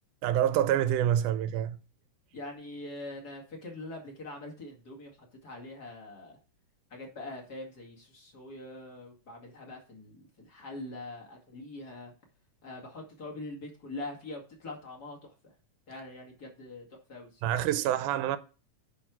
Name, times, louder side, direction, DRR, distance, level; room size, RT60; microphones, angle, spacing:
voice 1, 0.2-1.8 17.4-18.4, right 11 dB, 85° right, 2.2 m, -27 dB
voice 2, 2.3-5.1 5.4-6.4 6.9-12.1 12.6-15.2 15.9-17.5, left 2 dB, 35° left, 2.5 m, -43 dB
10.0 x 4.4 x 6.1 m
omnidirectional pair, 3.5 m